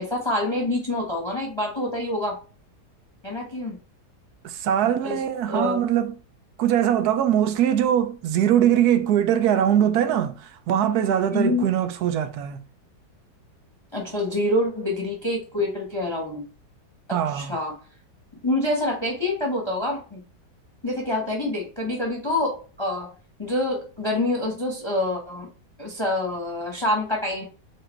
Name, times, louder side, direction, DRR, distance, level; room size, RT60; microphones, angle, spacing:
voice 1, 0.0-2.3 3.2-3.8 5.0-5.2 5.5-5.8 11.3-11.6 13.9-16.4 17.2-17.8 18.4-20.2 20.8-23.1 23.4-25.5 25.8-27.4, left 1 dB, 20° left, 0.9 m, -26 dB
voice 2, 4.4-6.2 6.6-12.6 17.1-17.5, right 10 dB, 70° right, 1.0 m, -22 dB
4.8 x 2.5 x 4.4 m
omnidirectional pair, 1.8 m